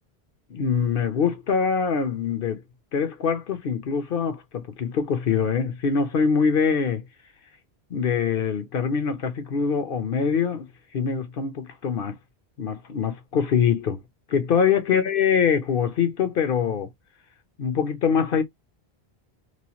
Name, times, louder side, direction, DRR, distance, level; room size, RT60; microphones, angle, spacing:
voice 1, 0.5-2.6 2.9-7.0 7.9-10.7 10.9-12.2 12.6-14.0 14.3-16.9 17.6-18.4, left 6 dB, 60° left, 0.9 m, -24 dB
3.0 x 2.2 x 2.8 m
omnidirectional pair, 1.1 m